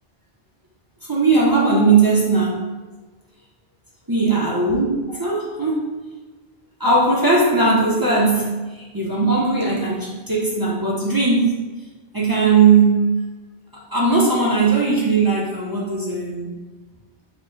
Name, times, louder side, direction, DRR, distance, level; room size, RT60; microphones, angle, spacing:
voice 1, 1.1-2.6 4.1-5.9 6.8-11.6 12.1-13.0 13.9-16.5, right 4 dB, 25° right, -5 dB, 0.6 m, -18 dB
4.4 x 2.1 x 3.8 m, 1.2 s
omnidirectional pair, 1.0 m